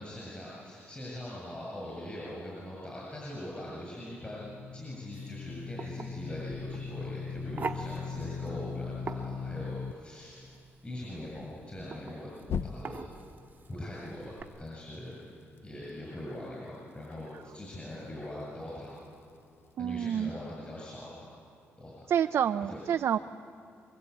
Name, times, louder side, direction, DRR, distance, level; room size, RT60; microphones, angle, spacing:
voice 1, 0.0-10.5 10.8-12.3 12.6-13.0 13.7-15.2 15.6-18.9 19.8-21.3 21.8-22.1 22.6-22.8, left 1 dB, 20° left, -5 dB, 7.8 m, -42 dB
sound 1, 4.1-9.9 12.4-13.2, left 6 dB, 55° left, 0.7 m, -38 dB
sound 2, 5.1-14.4, right 4 dB, 35° right, 1.3 m, -44 dB
voice 2, 19.8-20.4 22.1-23.2, right 9 dB, 60° right, 8 dB, 0.5 m, -28 dB
27.0 x 22.5 x 8.6 m, 2.5 s
cardioid pair, 120°, 5 cm